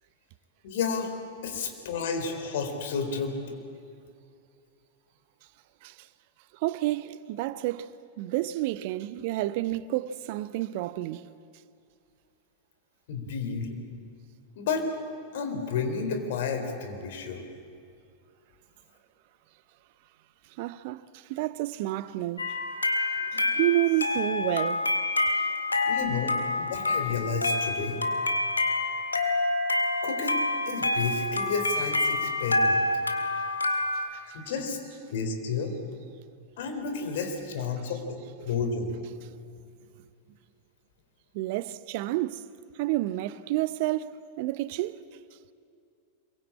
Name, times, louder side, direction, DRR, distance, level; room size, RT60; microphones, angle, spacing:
voice 1, 0.6-1.1 1.4-3.4 13.1-13.7 14.6-14.9 15.3-17.4 23.3-23.5 25.8-28.0 30.0-30.4 30.7-32.8 34.1-34.8 35.1-35.7 36.6-38.9, left 5 dB, 55° left, 4.0 m, -31 dB
voice 2, 6.5-11.3 20.6-22.5 23.6-24.8 41.3-42.5 42.7-45.0, right 16 dB, 50° right, 0.7 m, -30 dB
sound 1, 22.4-34.1, left 2 dB, 80° left, 2.0 m, -27 dB
26.0 x 23.0 x 8.7 m
figure-of-eight pair, 90°, 0 cm